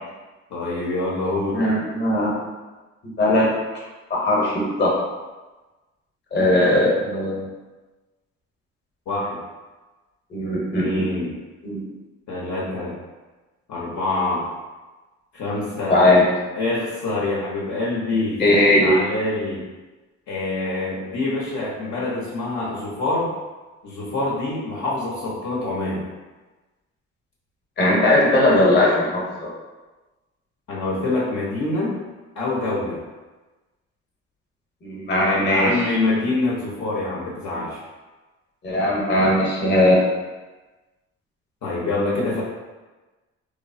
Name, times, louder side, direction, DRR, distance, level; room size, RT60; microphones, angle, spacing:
voice 1, 0.5-1.6 9.1-9.4 10.7-11.4 12.3-13.0 13.7-14.5 15.3-16.1 16.6-18.4 18.8-19.7 20.3-23.3 23.8-26.1 30.7-32.0 32.4-33.0 35.4-37.8 41.6-42.4, left 2 dB, 65° left, -5 dB, 0.8 m, -25 dB
voice 2, 1.5-2.3 3.0-3.5 4.1-4.9 6.3-7.5 10.3-11.3 11.6-11.9 15.9-16.2 18.4-18.9 27.8-29.5 34.8-35.9 38.6-40.0, left 1 dB, 35° left, -4 dB, 0.9 m, -19 dB
3.1 x 2.0 x 2.5 m, 1.2 s
cardioid pair, 90°, 30 cm